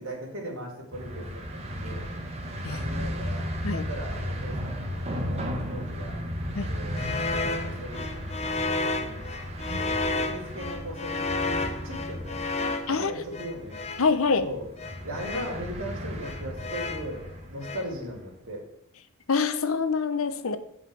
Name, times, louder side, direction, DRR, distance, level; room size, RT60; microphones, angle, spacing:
voice 1, 0.0-2.1 2.7-6.2 6.7-7.0 7.6-9.3 9.7-14.0 14.4-18.6, right 1 dB, 60° right, 0 dB, 2.9 m, -39 dB
sound 1, 0.9-18.2, equal, 30° right, 1.4 m, -35 dB
sound 2, 7.0-14.1 14.8-15.6 16.2-17.2 17.6-17.9, left 3 dB, 30° left, 0.6 m, -32 dB
voice 2, 14.0-14.5 19.3-20.6, left 5 dB, 65° left, 11 dB, 0.8 m, -25 dB
8.1 x 5.6 x 7.6 m, 0.74 s
head